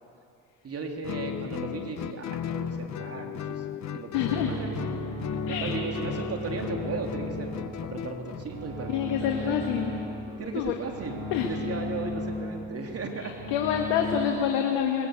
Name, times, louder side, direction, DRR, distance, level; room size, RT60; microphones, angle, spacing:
voice 1, 0.6-3.7 3.9-4.8 5.5-7.5 7.8-9.6 10.4-13.3, right 4 dB, 40° right, 3 dB, 3.3 m, -36 dB
Guitar, 1.0-8.5, left 10 dB, 50° left, 1.0 m, -35 dB
voice 2, 4.1-4.5 5.5-5.7 8.9-9.9 10.3-10.7 11.3-11.5 13.2-15.1, left 9 dB, 85° left, 3 dB, 1.7 m, -27 dB
sound 1, 4.1-14.3, left 1 dB, 60° right, 6.0 m, -36 dB
21.0 x 20.5 x 8.3 m, 2.6 s
supercardioid pair, 70°, 35 cm